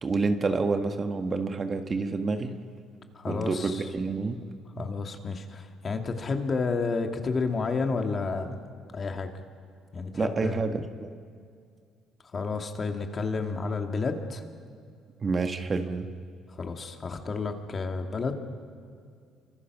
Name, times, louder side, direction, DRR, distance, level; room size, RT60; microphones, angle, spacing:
voice 1, 0.0-2.5 3.3-4.5 4.7-4.9 10.1-11.1 15.2-16.1, right 4 dB, 35° right, 7 dB, 1.5 m, -28 dB
voice 2, 3.1-3.8 4.8-8.6 8.9-9.3 9.9-10.6 12.3-14.4 16.5-18.3, left 4 dB, 40° left, 4 dB, 2.3 m, -31 dB
27.5 x 25.0 x 6.2 m, 2.2 s
cardioid pair, 90°, 0 cm